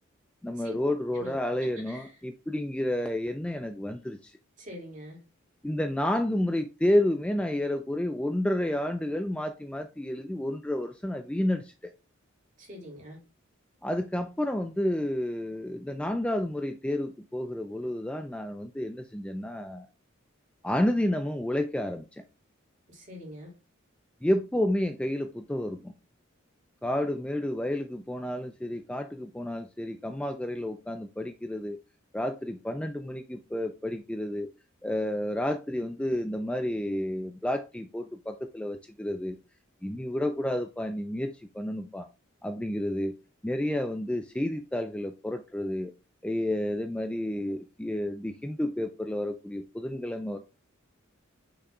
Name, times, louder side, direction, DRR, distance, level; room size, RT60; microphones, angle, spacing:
voice 1, 0.4-4.3 5.6-11.9 13.8-19.9 20.6-22.1 24.2-25.9 26.8-31.8 32.1-34.5 34.8-39.4 39.8-42.1 42.4-43.1 43.4-45.9 46.2-50.4, left 1 dB, 5° left, 0.3 m, -30 dB
voice 2, 1.1-2.1 4.6-5.2 12.6-13.2 22.9-23.5, equal, 40° right, 2.7 m, -44 dB
6.5 x 5.9 x 2.4 m
head